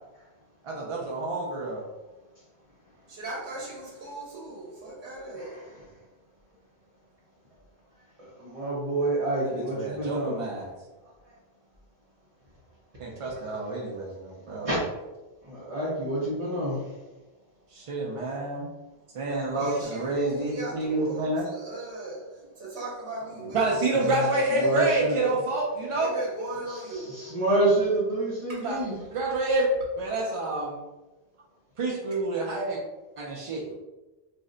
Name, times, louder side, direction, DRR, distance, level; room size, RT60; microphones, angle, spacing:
voice 1, 0.6-1.8 9.8-10.7 13.0-14.7 17.7-18.7 19.1-21.5 23.5-26.1 28.6-28.8 29.1-29.7 30.0-30.8 31.8-32.8 33.2-33.7, right 2 dB, 60° right, -2 dB, 0.3 m, -28 dB
voice 2, 3.1-5.6 19.5-25.0 26.0-27.3 28.5-28.7, right 1 dB, 85° right, -3 dB, 1.0 m, -38 dB
voice 3, 5.3-5.9 8.2-10.5 13.4-13.5 14.6-14.7 15.4-16.9 23.2-25.4 26.6-29.0, right 2 dB, 40° right, -7 dB, 0.7 m, -29 dB
2.5 x 2.1 x 3.7 m, 1.1 s
omnidirectional pair, 1.1 m